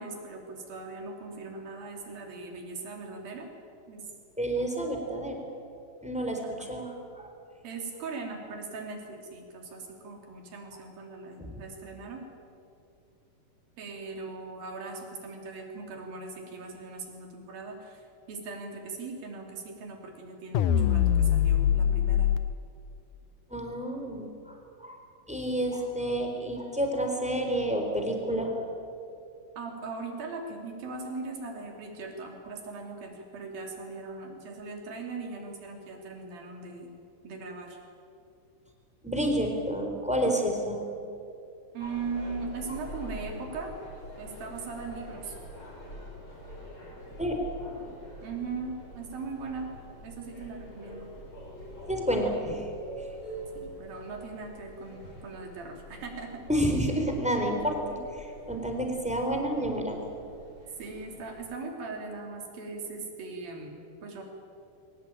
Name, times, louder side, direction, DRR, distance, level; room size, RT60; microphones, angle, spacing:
voice 1, 0.0-3.5 3.9-4.0 6.6-6.7 7.6-12.2 13.8-22.3 29.6-36.9 37.2-37.8 41.7-43.7 44.2-45.4 48.2-49.7 50.0-51.1 53.5-56.5 60.8-64.2, right 4 dB, 70° right, 2 dB, 4.7 m, -39 dB
voice 2, 4.4-5.4 6.0-7.3 11.4-11.6 23.5-25.0 25.3-28.6 39.0-40.8 47.2-47.4 51.9-52.7 56.5-60.0, right 1 dB, ahead, 2 dB, 3.1 m, -29 dB
sound 1, 20.5-22.4, left 9 dB, 75° left, 2.0 m, -23 dB
sound 2, 41.8-61.5, equal, 25° left, 6.4 m, -46 dB
23.5 x 19.5 x 8.9 m, 2.6 s
omnidirectional pair, 4.4 m